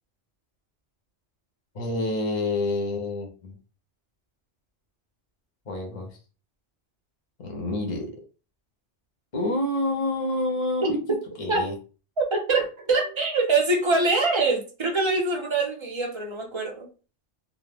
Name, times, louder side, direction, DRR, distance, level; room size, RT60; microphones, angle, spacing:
voice 1, 1.7-3.5 5.7-6.2 7.4-8.1 9.3-11.0 11.4-11.7, left 2 dB, 40° left, 2 dB, 0.5 m, -27 dB
voice 2, 12.2-16.9, right 3 dB, 40° right, 1 dB, 0.4 m, -24 dB
2.3 x 2.0 x 3.3 m, 0.35 s
omnidirectional pair, 1.2 m